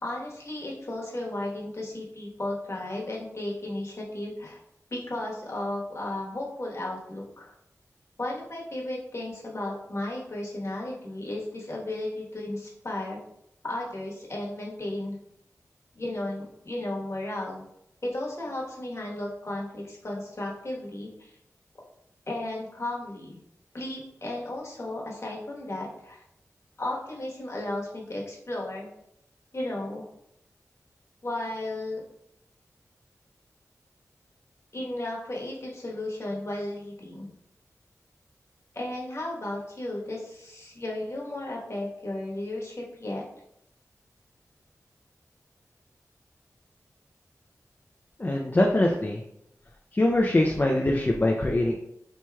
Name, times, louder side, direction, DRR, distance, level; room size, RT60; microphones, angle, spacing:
voice 1, 0.0-4.6 4.9-7.5 8.2-13.2 13.6-15.2 15.9-17.6 18.0-21.4 22.3-23.4 23.7-26.2 26.8-28.9 29.5-30.1 31.2-32.0 34.7-37.3 38.7-43.2, left 1 dB, 50° left, -4 dB, 1.2 m, -34 dB
voice 2, 48.2-49.2 49.9-51.8, left 1 dB, 30° left, 0 dB, 0.4 m, -23 dB
4.4 x 2.9 x 2.3 m, 0.78 s
cardioid pair, 50°, 6 cm